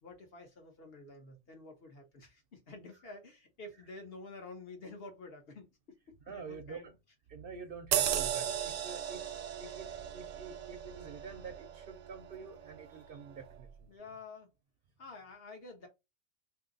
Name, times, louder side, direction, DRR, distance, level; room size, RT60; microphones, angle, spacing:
voice 1, 0.0-6.9 13.9-14.5 15.0-15.9, left 3 dB, 55° left, 1.1 m, -50 dB
voice 2, 6.2-7.0 7.3-13.9, right 5 dB, 60° right, 0.7 m, -47 dB
sound 1, 7.9-12.9 13.3-13.5, right 10 dB, 90° right, 1.0 m, -36 dB
2.9 x 2.8 x 3.8 m
omnidirectional pair, 1.3 m